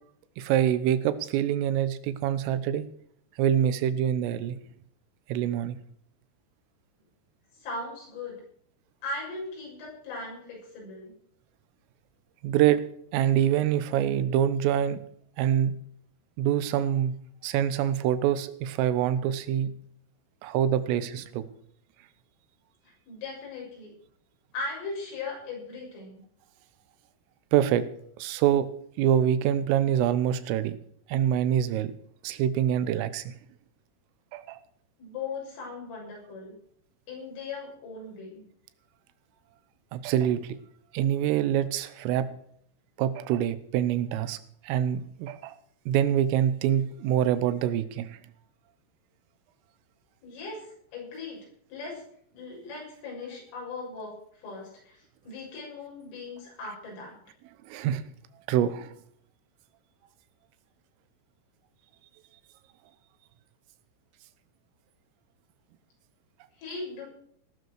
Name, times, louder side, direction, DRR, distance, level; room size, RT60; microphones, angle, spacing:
voice 1, 0.4-2.9 3.4-4.6 5.3-5.8 12.4-12.8 13.1-15.0 15.4-15.8 16.4-17.2 17.4-19.7 20.4-21.5 27.5-27.9 28.2-28.7 29.0-30.8 31.1-31.9 32.2-33.4 34.3-34.6 39.9-40.6 40.9-42.3 43.0-44.4 44.6-45.6 45.9-48.2 57.7-58.0 58.5-58.9, right 10 dB, 85° right, 14 dB, 3.6 m, -25 dB
voice 2, 7.6-8.4 9.0-11.1 22.8-23.9 24.5-26.2 35.0-36.6 37.1-38.4 50.2-51.4 51.7-52.0 52.3-55.0 55.2-57.2 66.6-67.1, left 3 dB, 80° left, -2 dB, 9.5 m, -38 dB
17.5 x 13.0 x 4.8 m, 0.65 s
omnidirectional pair, 5.7 m